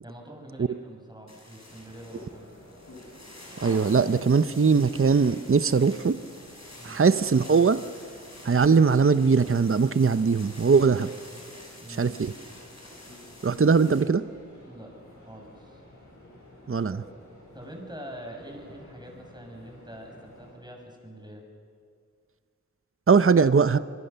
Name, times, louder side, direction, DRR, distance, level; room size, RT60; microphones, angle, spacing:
voice 1, 0.0-2.5 6.8-7.0 11.8-12.2 14.6-15.8 16.9-17.1 17.5-21.4, right 1 dB, 15° right, 1 dB, 6.5 m, -44 dB
sound 1, 1.3-14.0, left 1 dB, 60° left, 6.9 m, -46 dB
sound 2, 1.6-20.5, left 1 dB, 85° left, 7.3 m, -52 dB
voice 2, 3.6-6.2 6.8-7.8 8.4-11.1 11.9-12.3 13.4-14.2 16.7-17.0 23.1-23.8, right 5 dB, 45° right, 13 dB, 0.7 m, -21 dB
26.0 x 23.0 x 6.9 m, 2.1 s
wide cardioid pair, 45°, 30 cm